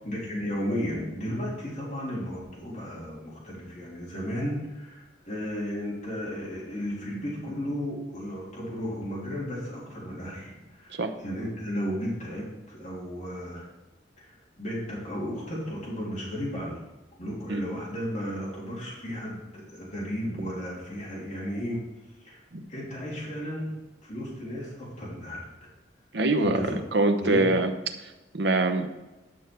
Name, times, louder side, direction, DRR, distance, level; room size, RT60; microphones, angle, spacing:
voice 1, 0.0-13.7 14.2-16.8 17.2-21.8 22.2-22.4 22.7-23.7 24.0-25.5 26.4-26.8 27.2-27.6, equal, 40° left, -6 dB, 3.2 m, -34 dB
voice 2, 26.1-27.7 28.0-28.9, right 2 dB, 65° right, 7 dB, 0.9 m, -24 dB
11.0 x 6.4 x 4.6 m, 1.1 s
head